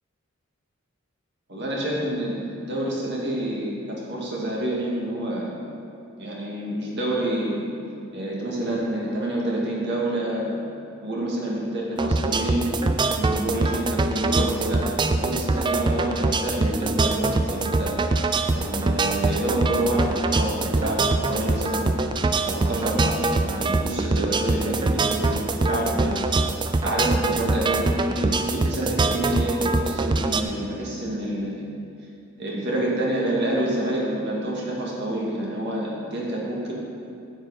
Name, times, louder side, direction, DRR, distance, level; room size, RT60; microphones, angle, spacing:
voice 1, 1.5-5.5 6.2-7.6 8.1-10.6 11.0-12.7 13.2-18.0 18.5-21.9 22.4-26.2 26.8-27.9 28.2-31.6 32.4-36.7, right 1 dB, 60° right, -3 dB, 2.0 m, -28 dB
sound 1, 12.0-30.4, right 3 dB, 25° right, 0.3 m, -24 dB
8.9 x 7.8 x 4.9 m, 2.5 s
head